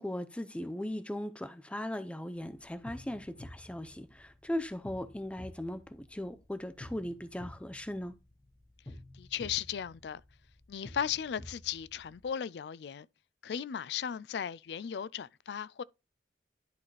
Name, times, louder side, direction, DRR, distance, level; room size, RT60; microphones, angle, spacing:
voice 1, 0.0-8.1, left 1 dB, 5° left, 0.5 m, -38 dB
sound 1, 2.6-12.3, left 1 dB, 25° left, 1.2 m, -51 dB
voice 2, 9.1-10.2 10.7-13.1 13.4-15.8, left 8 dB, 70° left, 0.4 m, -36 dB
11.0 x 4.1 x 3.2 m
head